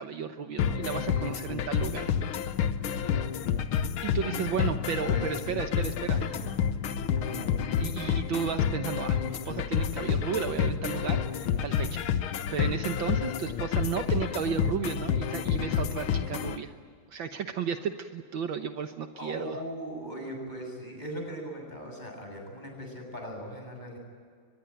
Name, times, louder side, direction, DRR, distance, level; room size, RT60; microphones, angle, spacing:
voice 1, 0.0-2.1 4.0-6.2 7.8-12.0 12.5-16.7 17.1-19.6, right 7 dB, 65° right, 7 dB, 1.8 m, -33 dB
sound 1, 0.6-16.6, left 8 dB, 80° left, 1.9 m, -29 dB
voice 2, 4.1-4.8 5.1-5.3 6.1-6.5 7.1-7.5 19.1-24.0, equal, 20° left, 1 dB, 7.6 m, -39 dB
23.5 x 22.0 x 9.0 m, 2.1 s
omnidirectional pair, 2.3 m